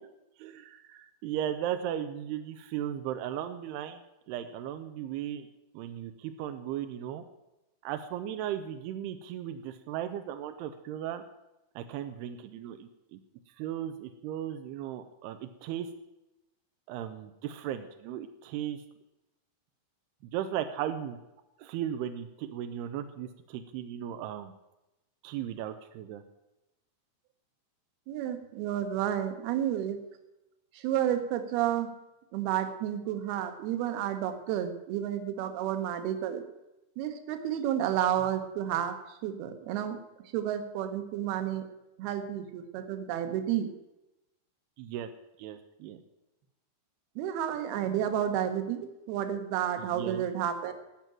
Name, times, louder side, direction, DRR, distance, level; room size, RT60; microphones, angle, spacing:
voice 1, 0.4-4.0 4.3-5.5 5.7-7.2 7.8-11.2 11.8-13.2 13.6-15.9 16.9-18.8 20.3-21.2 21.6-24.5 25.2-26.2 44.8-45.1 45.4-46.0 49.8-50.2, right 10 dB, 85° right, 8 dB, 2.4 m, -36 dB
voice 2, 28.1-30.0 30.8-31.9 32.3-36.4 37.0-40.0 40.3-41.7 42.0-43.7 47.2-50.7, right 10 dB, 70° right, 8 dB, 2.7 m, -31 dB
15.0 x 6.1 x 9.1 m, 0.95 s
omnidirectional pair, 5.3 m